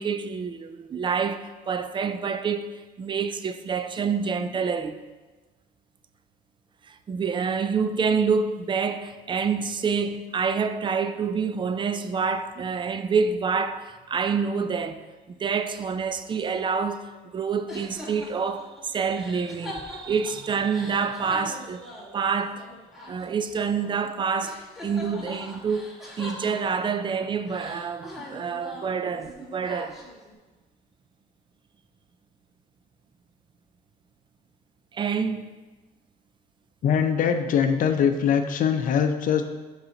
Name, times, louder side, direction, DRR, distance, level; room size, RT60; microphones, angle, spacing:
voice 1, 0.0-5.0 6.9-15.0 15.4-21.9 22.1-22.7 23.1-25.9 26.2-30.0 34.9-35.5, right 5 dB, 30° right, 0.4 m, -27 dB
sound 1, 17.7-24.1 24.4-27.1 27.5-30.3, left 1 dB, ahead, 2.2 m, -42 dB
voice 2, 36.8-39.4, left 7 dB, 55° left, 0.6 m, -22 dB
5.5 x 4.1 x 5.1 m
cardioid pair, 110°, 17 cm